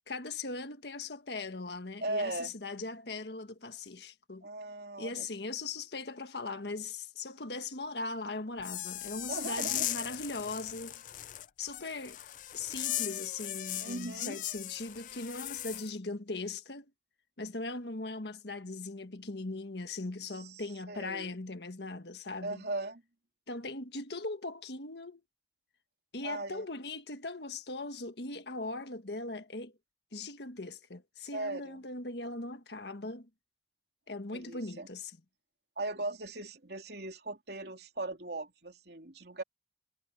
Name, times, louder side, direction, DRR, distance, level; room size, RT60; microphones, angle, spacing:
voice 1, 0.1-4.5 5.0-11.0 11.6-12.2 12.5-16.9 17.4-22.6 23.5-25.2 26.1-29.7 30.1-33.3 34.1-35.2, left 3 dB, 75° left, 1.6 m, -39 dB
voice 2, 2.0-2.5 4.4-5.3 9.3-9.9 13.8-14.4 20.9-21.3 22.4-23.0 26.2-26.6 31.3-31.8 34.3-34.9 35.8-39.4, right 2 dB, 70° right, 3.0 m, -38 dB
sound 1, 8.6-15.9, left 14 dB, 45° left, 0.4 m, -38 dB
head